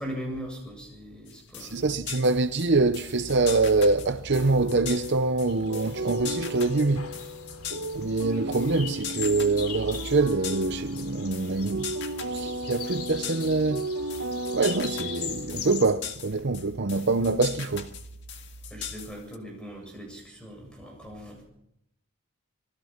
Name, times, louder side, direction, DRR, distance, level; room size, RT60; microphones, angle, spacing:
voice 1, 0.0-1.9 18.7-21.4, equal, 5° left, 7.9 m, -39 dB
sound 1, 1.3-19.4, left 8 dB, 50° left, 1.9 m, -40 dB
voice 2, 1.6-7.1 8.0-11.9 12.3-13.9 14.5-17.9, right 3 dB, 50° right, 0.7 m, -25 dB
sound 2, 4.3-16.0, right 1 dB, 80° right, 2.5 m, -35 dB
sound 3, 5.5-15.8, left 6 dB, 80° left, 3.0 m, -41 dB
26.0 x 20.5 x 5.9 m
head